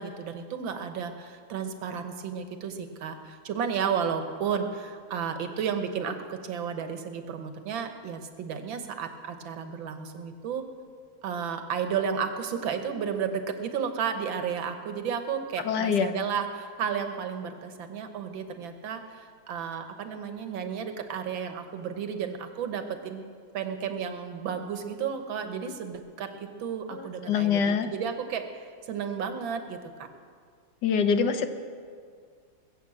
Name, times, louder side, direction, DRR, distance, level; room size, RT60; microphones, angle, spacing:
voice 1, 0.0-10.6 11.2-23.3 23.5-30.1, right 7 dB, 70° right, 7 dB, 1.8 m, -33 dB
voice 2, 15.6-16.1 26.9-27.9 30.8-31.5, left 6 dB, 65° left, 8 dB, 1.3 m, -25 dB
21.0 x 7.8 x 7.7 m, 2.1 s
omnidirectional pair, 2.2 m